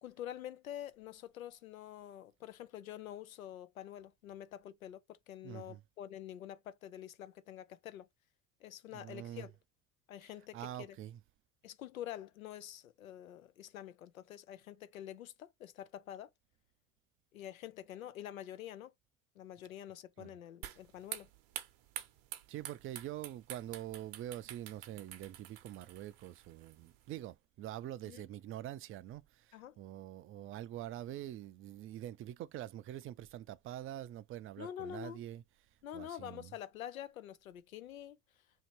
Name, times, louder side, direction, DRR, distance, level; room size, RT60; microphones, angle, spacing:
voice 1, 0.0-8.1 8.6-9.5 10.1-11.0 11.6-16.3 17.3-18.9 19.4-21.3 28.1-28.2 29.5-29.8 34.6-35.2 35.8-38.2, left 11 dB, 85° left, 0.5 m, -47 dB
voice 2, 5.4-5.8 8.9-9.5 10.5-11.2 20.2-20.3 22.5-35.4 35.9-36.5, right 12 dB, 35° right, 0.4 m, -45 dB
sound 1, 20.6-27.2, right 12 dB, 60° right, 0.8 m, -48 dB
2.9 x 2.8 x 4.3 m
hypercardioid pair, 65°, 41 cm